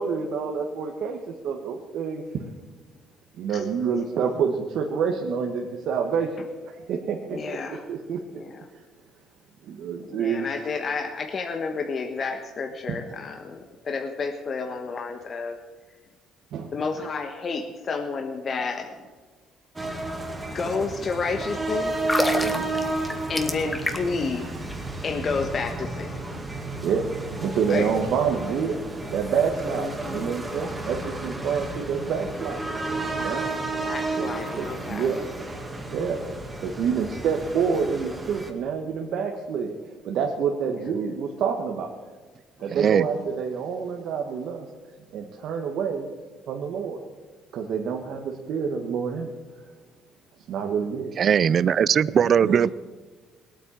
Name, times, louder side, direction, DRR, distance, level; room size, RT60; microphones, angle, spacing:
voice 1, 0.0-2.4 3.4-6.3 6.7-8.2 9.6-10.5 16.5-16.7 22.4-22.7 26.8-32.6 33.2-33.5 34.2-34.3 34.5-35.2 35.9-36.2 36.6-39.7 40.0-41.9 42.6-44.7 45.1-46.1 46.5-47.0 47.5-49.3 50.5-51.1 52.1-52.7, right 6 dB, 70° right, 1 dB, 1.5 m, -28 dB
voice 2, 7.3-7.8 8.3-8.7 10.0-15.6 16.7-19.1 20.5-22.0 23.3-24.5 25.0-26.2 27.7-27.9 29.7-30.3 33.8-35.3 40.7-40.9 45.2-45.3, left 4 dB, 40° left, 4 dB, 1.3 m, -31 dB
sound 1, 19.8-38.5, right 2 dB, 15° right, 2.2 m, -32 dB
sound 2, 21.9-24.3 24.6-24.7, left 1 dB, 10° left, 1.6 m, -27 dB
voice 3, 42.7-43.1 51.2-52.7, right 8 dB, 45° right, 20 dB, 0.4 m, -20 dB
19.0 x 8.9 x 7.5 m, 1.4 s
cardioid pair, 110°, 0 cm